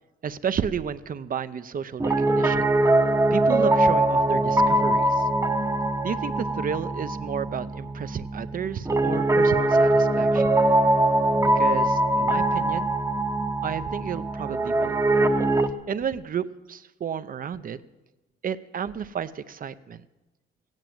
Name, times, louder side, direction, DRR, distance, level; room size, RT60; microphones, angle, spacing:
voice 1, 0.2-2.7 3.3-5.3 6.0-10.5 11.6-12.9 13.6-15.0 15.9-17.8 18.4-20.0, right 7 dB, 45° right, 13 dB, 0.7 m, -32 dB
Piano, 2.0-15.7, right 1 dB, 15° right, 0.9 m, -22 dB
16.0 x 9.1 x 7.7 m, 1.1 s
cardioid pair, 90°, 20 cm